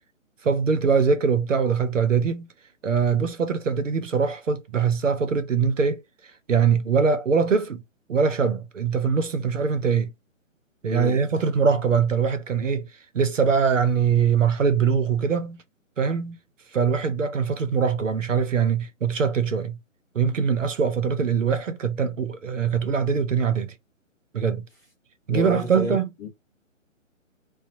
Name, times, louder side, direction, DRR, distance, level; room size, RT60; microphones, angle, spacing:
voice 1, 0.4-2.5 2.8-6.0 6.5-7.8 8.1-10.1 10.8-12.9 13.1-15.6 16.0-16.4 16.7-19.8 20.1-23.7 24.3-24.6 25.3-26.1, right 6 dB, 70° right, 0.8 m, -22 dB
voice 2, 25.3-26.3, left 3 dB, 15° left, 0.6 m, -30 dB
2.7 x 2.3 x 2.6 m
figure-of-eight pair, 140°, 40 cm